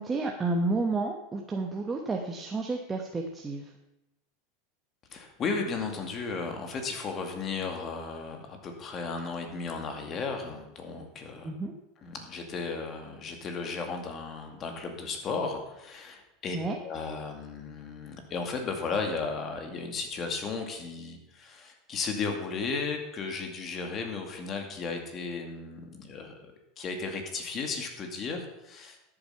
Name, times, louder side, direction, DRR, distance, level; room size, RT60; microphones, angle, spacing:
voice 1, 0.0-3.7 11.4-11.7 16.5-16.8, right 3 dB, 15° right, 2 dB, 1.1 m, -31 dB
voice 2, 5.1-11.5 12.0-16.6 16.8-29.0, left 4 dB, 35° left, 4 dB, 2.3 m, -35 dB
13.0 x 7.8 x 5.8 m, 0.91 s
supercardioid pair, 130°, 0 cm